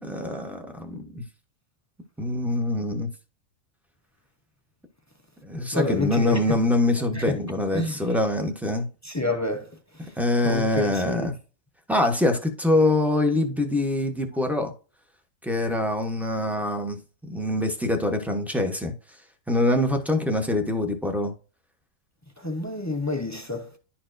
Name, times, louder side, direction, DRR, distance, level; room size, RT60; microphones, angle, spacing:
voice 1, 0.0-1.2 2.2-3.1 5.4-8.9 10.2-11.3 11.9-14.7 15.4-18.9 19.5-21.3, left 1 dB, ahead, 0.7 m, -24 dB
voice 2, 5.7-6.6 7.1-7.4 7.7-8.0 9.0-9.7 10.4-11.3 22.4-23.8, left 2 dB, 30° left, 0.3 m, -28 dB
11.0 x 4.4 x 2.5 m
omnidirectional pair, 1.5 m